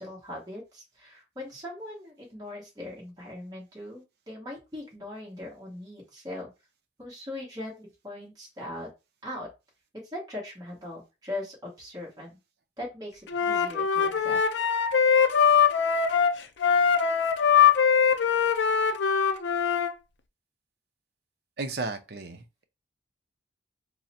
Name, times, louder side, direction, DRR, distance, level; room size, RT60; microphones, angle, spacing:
voice 1, 0.0-6.5 7.0-8.9 9.2-9.5 10.0-12.4 12.8-14.4, left 1 dB, 20° right, 1.3 m, -40 dB
Wind instrument woodwind instrument, 13.3-19.9, left 7 dB, 70° left, 0.5 m, -22 dB
voice 2, 21.6-22.6, right 3 dB, 55° right, 0.6 m, -34 dB
3.7 x 2.1 x 4.2 m
head